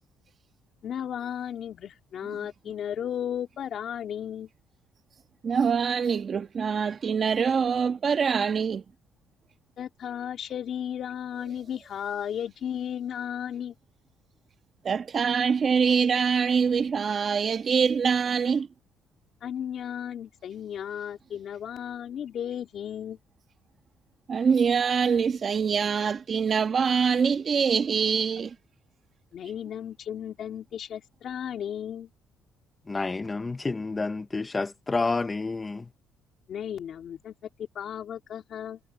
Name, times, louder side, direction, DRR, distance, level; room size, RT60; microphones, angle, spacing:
voice 1, 0.8-4.5 9.8-13.7 19.4-23.2 29.3-32.1 36.5-38.8, left 9 dB, 55° left, 2.8 m, -34 dB
voice 2, 5.4-8.8 14.8-18.7 24.3-28.5, right 6 dB, 40° right, 1.3 m, -24 dB
voice 3, 32.9-35.8, left 3 dB, 20° left, 0.8 m, -29 dB
cardioid pair, 120°, 0 cm